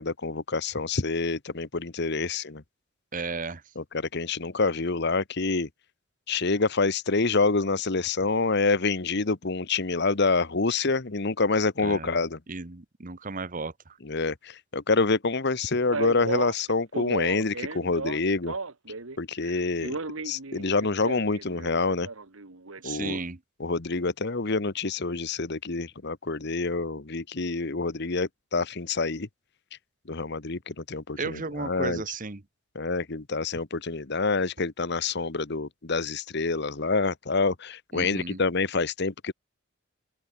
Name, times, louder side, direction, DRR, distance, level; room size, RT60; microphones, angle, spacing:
voice 1, 0.0-2.6 3.7-5.7 6.3-12.4 14.0-18.5 19.2-20.0 20.2-22.1 22.8-23.2 23.6-29.3 30.1-32.0 32.7-39.3, left 3 dB, 55° left, 1.2 m, -27 dB
voice 2, 3.1-3.6 11.8-12.1 12.5-13.7 22.8-23.4 31.2-32.4 37.9-38.4, right 4 dB, 40° right, 1.1 m, -34 dB
Male speech man speaking, 15.9-19.2 19.4-22.8, right 3 dB, 80° right, 1.8 m, -35 dB
open air
head